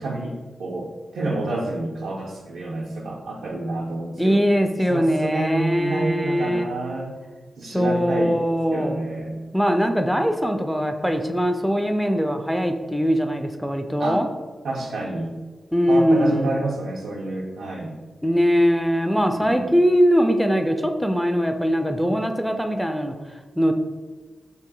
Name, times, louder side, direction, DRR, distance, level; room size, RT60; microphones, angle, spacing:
voice 1, 0.0-4.4 4.9-7.1 7.6-8.4 8.7-9.3 14.0-14.2 14.6-15.4 15.9-17.9 19.3-19.7, right 2 dB, 80° right, -3 dB, 0.4 m, -29 dB
voice 2, 4.2-6.7 7.7-9.0 9.5-14.3 15.7-16.6 18.2-23.1 23.6-23.7, equal, ahead, 5 dB, 0.4 m, -21 dB
2.7 x 2.6 x 3.7 m, 1.3 s
cardioid pair, 45°, 0 cm